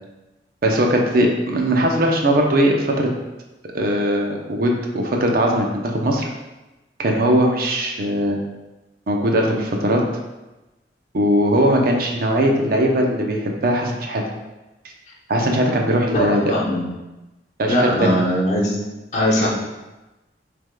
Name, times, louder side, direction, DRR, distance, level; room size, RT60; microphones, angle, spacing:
voice 1, 0.6-3.1 3.7-6.3 7.0-8.4 9.1-10.0 11.1-14.2 15.3-16.5 17.6-18.1, right 1 dB, 55° right, 1 dB, 0.6 m, -19 dB
voice 2, 16.1-16.8 17.7-18.8 19.1-19.5, equal, 40° left, -4 dB, 1.0 m, -20 dB
6.3 x 3.5 x 2.2 m, 1.1 s
head